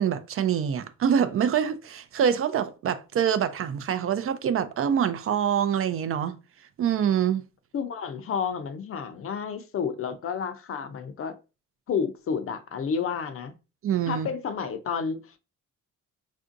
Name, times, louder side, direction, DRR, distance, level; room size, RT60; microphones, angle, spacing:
voice 1, 0.0-6.4 6.8-7.4 13.8-14.3, right 8 dB, 45° right, 0.4 m, -25 dB
voice 2, 7.7-11.4 11.9-13.5 14.1-15.2, left 6 dB, 45° left, 0.5 m, -30 dB
3.5 x 2.5 x 2.5 m
cardioid pair, 90°, 30 cm